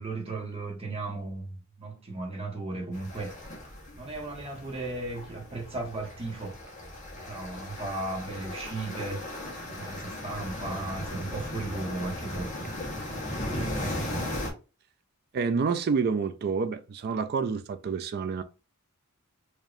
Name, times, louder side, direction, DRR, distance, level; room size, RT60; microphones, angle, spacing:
voice 1, 0.0-3.3 4.0-6.6 7.1-9.3 9.7-12.7 13.4-14.1, right 2 dB, 25° right, 1.3 m, -36 dB
sound 1, 2.9-14.5, left 1 dB, 35° left, 1.3 m, -37 dB
voice 2, 15.3-18.4, right 5 dB, 45° right, 0.4 m, -28 dB
5.0 x 2.7 x 2.6 m
head